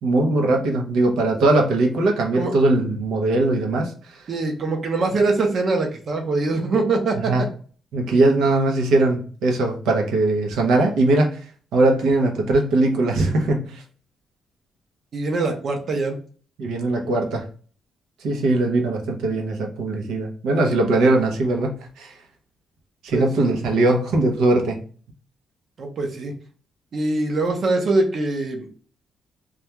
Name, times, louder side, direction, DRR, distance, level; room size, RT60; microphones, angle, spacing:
voice 1, 0.0-3.9 7.3-7.4 7.9-11.4 11.7-13.8 16.6-17.4 18.2-22.1 23.0-24.8, right 2 dB, 90° right, 0.7 m, -20 dB
voice 2, 4.3-7.5 15.1-16.2 23.1-23.3 25.8-26.3 26.9-28.7, right 3 dB, 50° right, 0.6 m, -23 dB
2.3 x 2.2 x 2.9 m
cardioid pair, 125°, 0 cm